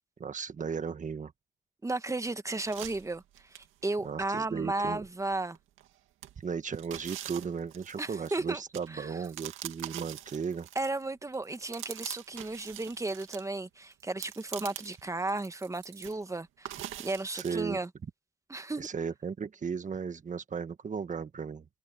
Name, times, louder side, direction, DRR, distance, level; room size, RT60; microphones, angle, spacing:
voice 1, 0.2-1.3 4.0-5.0 6.4-10.7 17.3-17.8 18.8-21.7, right 6 dB, 40° right, 1.6 m, -36 dB
voice 2, 1.8-5.6 8.0-8.6 8.9-9.2 10.7-17.9 18.5-18.9, right 2 dB, 15° right, 1.4 m, -34 dB
sound 1, 2.7-3.9 4.4-4.5 4.9-5.9 6.2-11.1 11.3-13.4 13.9-15.0 15.3-16.2 16.7-17.5, right 13 dB, 85° right, 2.1 m, -43 dB
cardioid pair, 90°, 20 cm